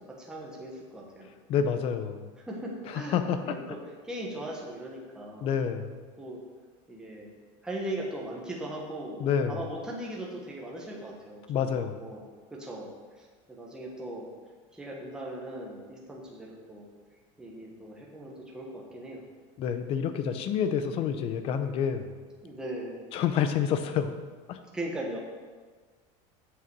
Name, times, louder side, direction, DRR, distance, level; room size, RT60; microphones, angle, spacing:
voice 1, 0.1-1.3 2.4-3.8 4.0-5.5 6.2-6.4 6.9-7.3 7.6-9.2 9.5-12.2 12.5-12.9 13.2-14.3 14.7-16.9 17.4-19.2 22.4-23.0 24.7-25.2, right 1 dB, 5° right, -3 dB, 1.2 m, -39 dB
voice 2, 1.5-2.3 2.9-3.6 5.4-6.0 9.2-9.6 11.5-12.0 19.6-22.1 23.1-24.1 24.5-24.6, left 7 dB, 35° left, 9 dB, 0.6 m, -28 dB
7.9 x 6.6 x 6.0 m, 1.5 s
cardioid pair, 175°, 17 cm